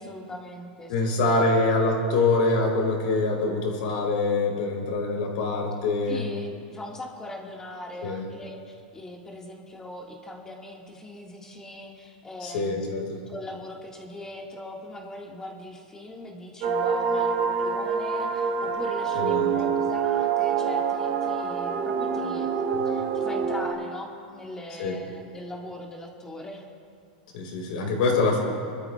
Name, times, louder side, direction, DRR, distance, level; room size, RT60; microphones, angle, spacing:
voice 1, 0.0-1.5 6.1-12.9 13.3-26.6, left 1 dB, 10° left, -1 dB, 1.7 m, -40 dB
voice 2, 0.9-6.2 8.0-8.2 12.4-13.2 19.2-19.5 24.8-25.0 27.3-28.4, left 3 dB, 65° left, 0 dB, 3.6 m, -24 dB
sound 1, 16.6-23.7, right 6 dB, 50° right, 3.1 m, -26 dB
27.5 x 13.0 x 2.3 m, 2.4 s
supercardioid pair, 140°, 5 cm